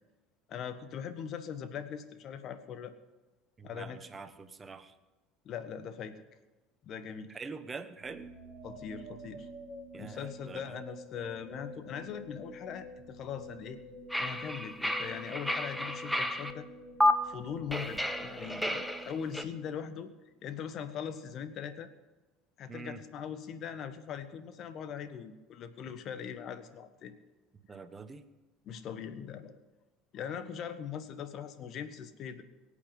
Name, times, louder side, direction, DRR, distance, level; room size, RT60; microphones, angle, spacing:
voice 1, 0.5-2.9 3.6-4.0 5.4-6.2 6.8-7.4 8.6-9.5 9.9-13.8 14.2-16.7 17.2-20.1 20.4-21.9 22.6-27.1 28.6-29.6 30.1-32.4, left 8 dB, 50° left, 11 dB, 1.4 m, -41 dB
voice 2, 3.6-4.9 7.3-8.3 9.9-10.8 22.7-23.0 27.7-28.2, right 4 dB, 25° right, 11 dB, 1.2 m, -44 dB
sound 1, 8.0-20.1, equal, 20° left, 4.8 m, -48 dB
sound 2, 14.1-16.5 17.0-17.1 17.7-19.4, left 1 dB, ahead, 1.2 m, -31 dB
23.0 x 8.5 x 5.4 m, 1.2 s
figure-of-eight pair, 65°, 0 cm